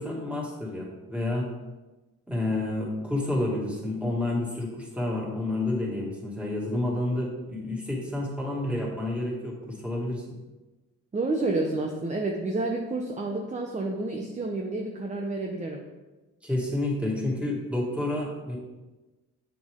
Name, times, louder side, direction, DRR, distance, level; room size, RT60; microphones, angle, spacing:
voice 1, 0.0-1.5 2.3-10.4 16.4-18.6, left 1 dB, 5° right, -3 dB, 2.3 m, -29 dB
voice 2, 11.1-15.8, right 2 dB, 25° right, 2 dB, 0.8 m, -29 dB
7.4 x 6.9 x 3.7 m, 1.1 s
cardioid pair, 90°, 30 cm